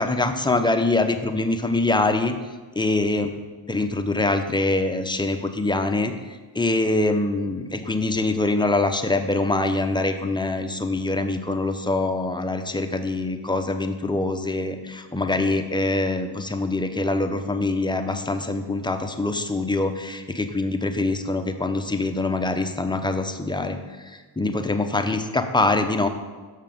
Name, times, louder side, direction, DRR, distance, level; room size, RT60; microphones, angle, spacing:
voice 1, 0.0-2.4 2.8-3.3 3.7-26.1, left 2 dB, 10° left, 6 dB, 0.8 m, -24 dB
7.3 x 5.6 x 5.3 m, 1.4 s
supercardioid pair, 60°, 48 cm